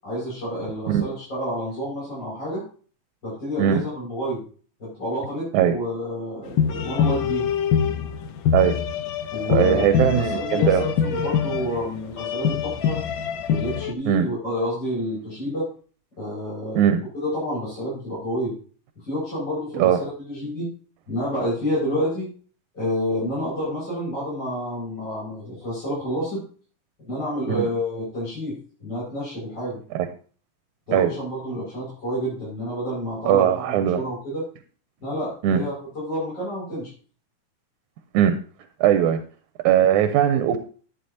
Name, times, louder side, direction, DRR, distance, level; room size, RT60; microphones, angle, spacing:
voice 1, 0.0-2.6 3.2-4.4 4.8-7.5 9.3-13.0 13.5-15.7 16.2-18.5 19.0-20.7 21.1-22.3 22.7-26.4 27.0-29.8 30.9-34.4 35.0-36.9, equal, 35° left, -8 dB, 6.4 m, -29 dB
sound 1, 6.5-13.9, left 7 dB, 80° left, 1.1 m, -24 dB
voice 2, 9.5-10.8 14.1-14.3 16.8-17.0 19.8-20.0 27.5-27.7 30.0-30.1 30.9-31.1 33.3-34.0 35.4-35.6 38.1-38.4 38.8-39.2 39.6-40.6, right 10 dB, 90° right, 8 dB, 2.2 m, -19 dB
11.0 x 9.8 x 2.8 m, 0.40 s
omnidirectional pair, 3.4 m